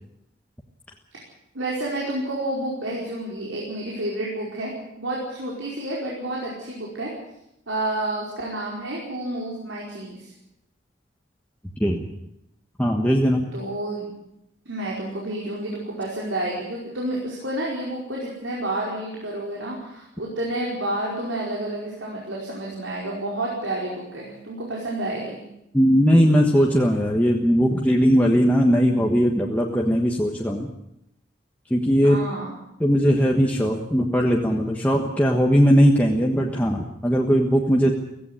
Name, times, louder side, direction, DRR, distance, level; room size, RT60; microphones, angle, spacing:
voice 1, 1.5-7.1 7.7-10.3 13.5-14.1 14.6-25.4 32.0-32.5, right 1 dB, 85° right, -4 dB, 5.0 m, -30 dB
voice 2, 12.8-13.4 25.7-30.7 31.7-32.2 32.8-37.9, equal, 10° left, -1 dB, 1.4 m, -19 dB
16.5 x 16.0 x 10.0 m, 0.84 s
head